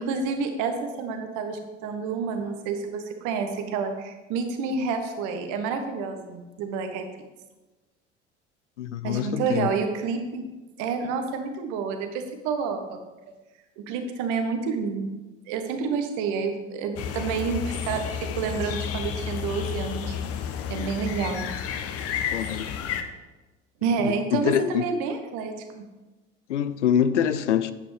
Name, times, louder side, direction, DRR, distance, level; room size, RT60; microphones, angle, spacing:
voice 1, 0.0-7.1 9.0-10.4 10.8-13.0 13.8-15.1 15.5-20.1 20.7-21.4 23.8-25.8, right 5 dB, 55° right, 1.3 m, -29 dB
voice 2, 8.8-9.7 22.3-22.7 24.0-24.9 26.5-27.7, left 9 dB, 75° left, 0.6 m, -25 dB
sound 1, 17.0-23.0, left 8 dB, 40° left, 0.9 m, -31 dB
10.0 x 8.5 x 3.4 m
figure-of-eight pair, 65°, 35 cm